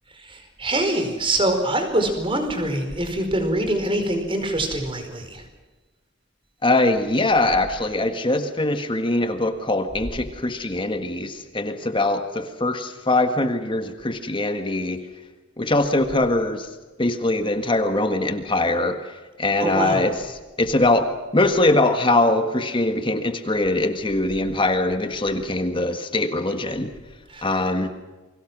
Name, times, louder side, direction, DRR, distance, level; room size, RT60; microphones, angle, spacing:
voice 1, 0.3-5.4 19.6-20.0 27.3-27.5, right 1 dB, 25° right, 6 dB, 4.8 m, -24 dB
voice 2, 6.6-15.0 15.6-16.7 17.0-21.1 21.3-26.9 27.4-27.9, left 2 dB, 25° left, 7 dB, 1.7 m, -22 dB
29.5 x 23.5 x 6.2 m, 1.2 s
head